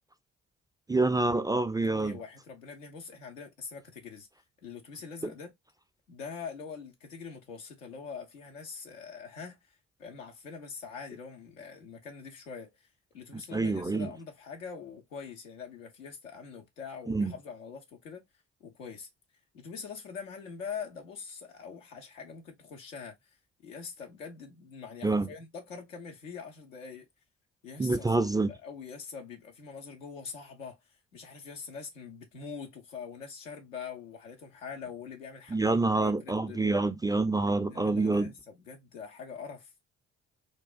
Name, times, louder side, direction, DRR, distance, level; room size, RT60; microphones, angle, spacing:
voice 1, 0.9-2.2 5.2-5.3 13.3-14.1 17.1-17.3 25.0-25.3 27.8-28.5 35.5-38.3, right 3 dB, 10° right, 0.3 m, -27 dB
voice 2, 1.8-4.3 4.6-5.5 6.1-9.6 10.0-12.7 13.1-18.2 18.6-19.1 19.5-23.2 23.6-27.1 27.6-30.8 31.1-36.8 37.6-39.7, left 6 dB, 90° left, 0.7 m, -43 dB
3.3 x 2.3 x 2.3 m
hypercardioid pair, 40°, 37 cm